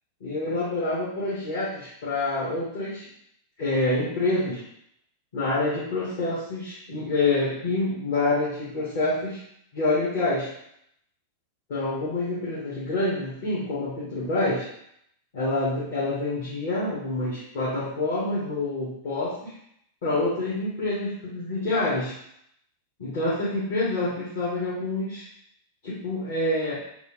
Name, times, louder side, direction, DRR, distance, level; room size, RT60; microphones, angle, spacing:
voice 1, 0.2-3.1 3.6-4.6 5.3-9.4 9.7-10.5 11.7-14.7 15.3-19.5 20.0-22.1 23.0-25.3 25.8-26.8, left 2 dB, 55° left, -10 dB, 1.3 m, -27 dB
3.3 x 2.5 x 3.1 m, 0.73 s
figure-of-eight pair, 90°, 0 cm